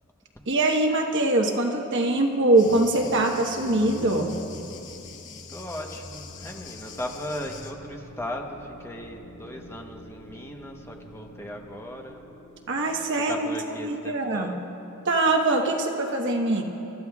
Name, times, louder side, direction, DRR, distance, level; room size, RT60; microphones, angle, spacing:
voice 1, 0.5-4.3 12.7-13.6 13.8-14.5 15.0-16.6, right 2 dB, 55° right, 2 dB, 1.2 m, -23 dB
Thunder, 2.5-7.7, left 4 dB, 55° left, 1.0 m, -43 dB
sound 1, 2.7-13.0, equal, 5° right, 2.8 m, -50 dB
voice 2, 5.5-12.2 13.3-14.5, left 1 dB, 10° left, 1 dB, 1.0 m, -37 dB
sound 2, 5.6-13.3, right 1 dB, 90° left, 1.3 m, -50 dB
30.0 x 13.5 x 2.4 m, 2.9 s
head